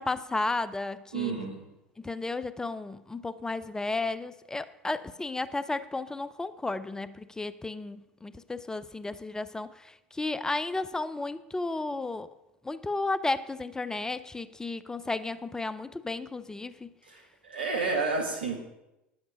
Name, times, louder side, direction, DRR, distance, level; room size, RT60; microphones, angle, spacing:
voice 1, 0.0-1.3 2.0-12.3 12.6-16.9, left 3 dB, 10° left, 0.5 m, -33 dB
voice 2, 1.1-1.6 17.1-18.6, right 4 dB, 80° right, 1.9 m, -30 dB
10.5 x 7.9 x 5.1 m
figure-of-eight pair, 80°, 5 cm